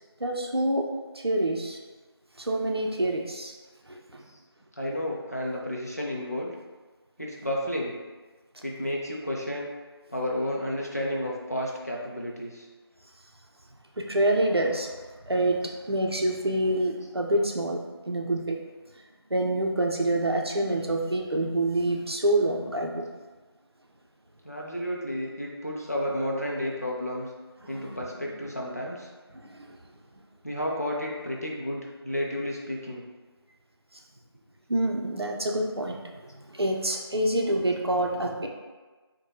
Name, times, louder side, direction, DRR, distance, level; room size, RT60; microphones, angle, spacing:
voice 1, 0.2-0.9 1.1-1.8 2.4-3.5 3.9-4.2 8.5-8.6 14.0-15.0 15.2-17.8 18.1-18.6 19.3-23.1 27.6-28.0 29.3-29.8 34.7-38.5, right 1 dB, 70° right, 1 dB, 0.6 m, -27 dB
voice 2, 4.8-6.5 7.2-8.0 8.6-9.7 10.1-12.7 15.6-15.7 24.4-27.3 27.7-29.1 30.4-33.0, left 1 dB, 40° left, -3 dB, 0.5 m, -31 dB
4.5 x 2.2 x 2.8 m, 1.3 s
figure-of-eight pair, 180°, 14 cm